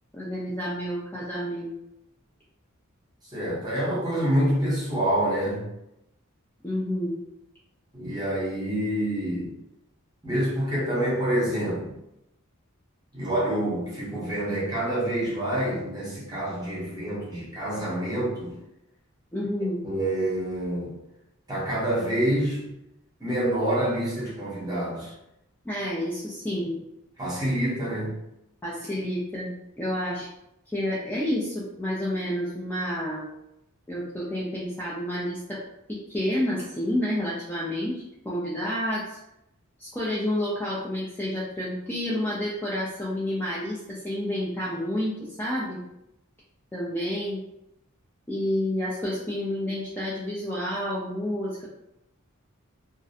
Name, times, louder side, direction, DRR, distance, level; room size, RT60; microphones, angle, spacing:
voice 1, 0.1-1.7 6.6-7.2 19.3-19.8 25.6-26.8 28.6-30.3 30.7-33.3 33.9-35.6 35.9-39.2 39.8-45.8 46.7-47.4 48.3-51.6, left 1 dB, 10° left, -7 dB, 0.4 m, -29 dB
voice 2, 3.3-5.7 7.9-9.5 10.2-11.9 13.1-18.6 19.8-20.9 21.5-22.7 23.2-25.1 27.2-28.2, right 1 dB, 20° right, -6 dB, 0.8 m, -27 dB
2.3 x 2.1 x 2.7 m, 0.84 s
head